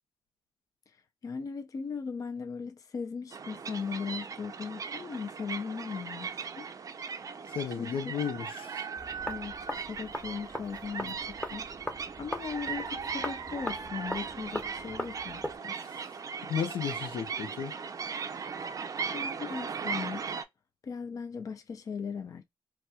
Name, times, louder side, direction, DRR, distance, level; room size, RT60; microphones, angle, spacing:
voice 1, 1.2-6.7 7.8-8.0 9.3-9.5 9.9-11.2 11.5-11.7 12.2-15.7 19.1-20.3 20.8-22.5, left 5 dB, 40° left, 0.4 m, -38 dB
sound 1, 3.3-20.4, right 6 dB, 40° right, 0.5 m, -38 dB
voice 2, 7.5-8.8 15.8-16.0 16.4-17.7, left 7 dB, 90° left, 0.7 m, -34 dB
sound 2, 9.0-15.6, left 1 dB, 15° left, 0.8 m, -40 dB
4.2 x 2.2 x 2.2 m
cardioid pair, 120°, 9 cm